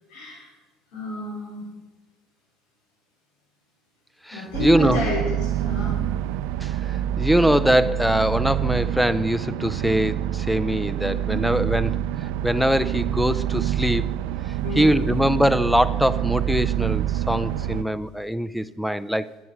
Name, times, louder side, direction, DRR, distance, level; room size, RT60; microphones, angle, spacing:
voice 1, 0.1-0.5 0.9-1.7 4.3-6.0 11.3-11.4 14.6-15.0, left 2 dB, 75° left, -3 dB, 4.4 m, -29 dB
voice 2, 4.2-5.0 6.6-12.0 12.4-14.1 14.8-19.3, equal, ahead, 16 dB, 0.5 m, -22 dB
sound 1, 4.5-17.8, right 11 dB, 75° right, 0.4 m, -26 dB
11.5 x 9.4 x 5.7 m, 1.1 s
supercardioid pair, 100°, 0 cm